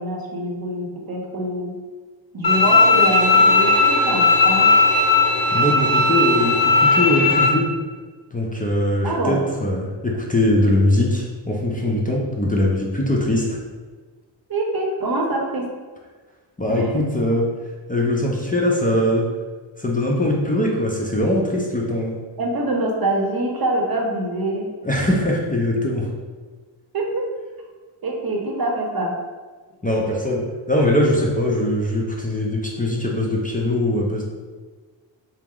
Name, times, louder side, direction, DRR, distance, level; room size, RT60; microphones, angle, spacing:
voice 1, 0.0-1.8 2.3-4.7 9.0-9.4 14.5-15.7 16.7-17.0 22.4-24.7 26.9-27.3 28.0-29.1, right 1 dB, 50° right, 1 dB, 0.8 m, -25 dB
Bowed string instrument, 2.4-7.5, left 3 dB, 50° left, 0.8 m, -16 dB
voice 2, 5.5-7.7 8.3-13.6 16.6-17.5 17.9-19.3 19.8-22.2 24.8-26.1 29.8-34.2, left 1 dB, 15° left, -2 dB, 0.6 m, -21 dB
4.3 x 2.0 x 3.6 m, 1.4 s
cardioid pair, 65°, 48 cm